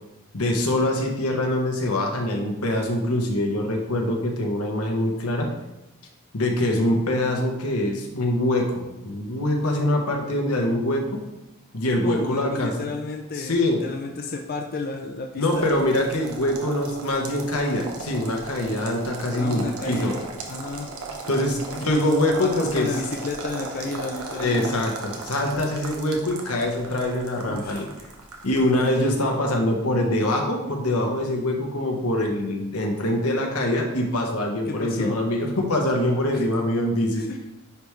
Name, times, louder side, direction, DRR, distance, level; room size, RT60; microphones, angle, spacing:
voice 1, 0.3-5.5 6.3-11.2 11.7-12.9 13.3-13.8 15.4-20.1 21.3-22.9 24.4-27.9 28.4-37.2, left 1 dB, 85° left, 1 dB, 1.2 m, -24 dB
voice 2, 12.0-13.6 13.8-15.7 19.4-20.2 20.5-20.9 21.9-22.0 22.4-24.9 27.5-27.9 34.7-35.1 36.3-36.4 37.2-37.4, left 3 dB, 45° left, 2 dB, 0.5 m, -32 dB
sound 1, 15.5-29.0, right 3 dB, 80° right, 1.0 m, -37 dB
10.0 x 3.5 x 3.2 m, 0.94 s
head